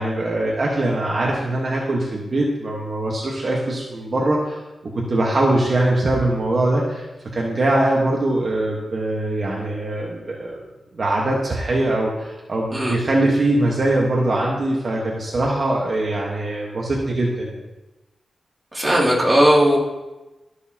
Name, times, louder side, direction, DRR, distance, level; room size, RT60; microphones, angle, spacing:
voice 1, 0.0-4.6 4.9-7.0 7.3-10.6 11.0-17.6, right 1 dB, 45° right, -3 dB, 1.3 m, -22 dB
voice 2, 18.7-19.8, equal, 15° right, -6 dB, 2.5 m, -16 dB
13.5 x 6.5 x 2.9 m, 1.1 s
wide cardioid pair, 140°, 0 cm